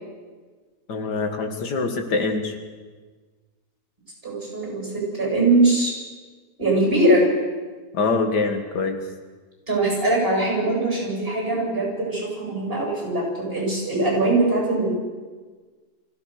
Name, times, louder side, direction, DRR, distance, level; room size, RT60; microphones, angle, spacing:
voice 1, 0.9-2.6 7.9-9.0, left 3 dB, 90° left, 5 dB, 2.4 m, -24 dB
voice 2, 4.2-5.9 6.6-7.2 9.7-14.9, right 2 dB, 35° right, -1 dB, 8.3 m, -21 dB
24.5 x 16.0 x 6.6 m, 1.4 s
omnidirectional pair, 1.7 m